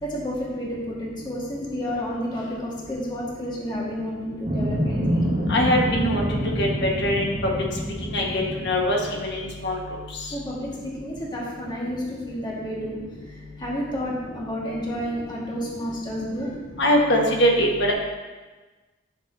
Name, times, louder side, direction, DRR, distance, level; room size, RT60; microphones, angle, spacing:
voice 1, 0.0-5.2 10.3-13.0 13.6-16.5, equal, 25° left, -5 dB, 1.6 m, -31 dB
sound 1, 4.4-9.5, equal, 35° right, 1.6 m, -27 dB
voice 2, 5.5-6.2 6.6-7.3 8.1-9.7 16.8-17.9, equal, 60° left, -1 dB, 1.4 m, -22 dB
9.6 x 6.5 x 2.7 m, 1.3 s
head